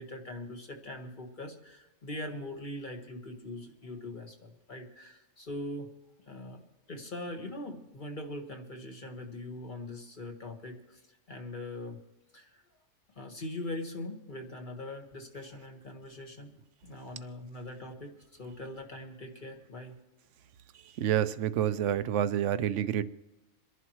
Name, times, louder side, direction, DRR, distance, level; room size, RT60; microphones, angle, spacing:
voice 1, 0.0-5.9 6.3-11.0 11.3-12.0 12.3-12.6 13.2-16.5 16.8-18.1 18.4-20.0, left 1 dB, 35° left, 1.7 m, -41 dB
voice 2, 21.0-23.0, right 10 dB, 65° right, 0.9 m, -28 dB
27.5 x 11.0 x 3.1 m
omnidirectional pair, 1.4 m